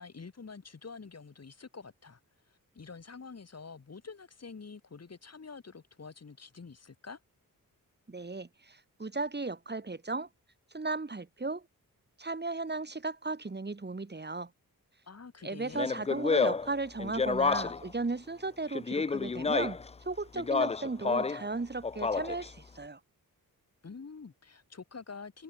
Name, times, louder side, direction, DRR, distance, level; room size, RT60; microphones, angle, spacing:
voice 1, 0.0-2.2 2.5-7.2 15.1-15.9 23.8-25.4, left 5 dB, 45° left, 4.7 m, -47 dB
voice 2, 8.1-10.3 10.7-11.6 12.2-14.5 15.4-23.0, right 3 dB, 30° right, 3.7 m, -36 dB
Speech, 15.7-17.9 18.7-19.9 20.3-21.5 21.8-22.5, left 4 dB, 20° left, 0.4 m, -29 dB
open air
wide cardioid pair, 95°, 36 cm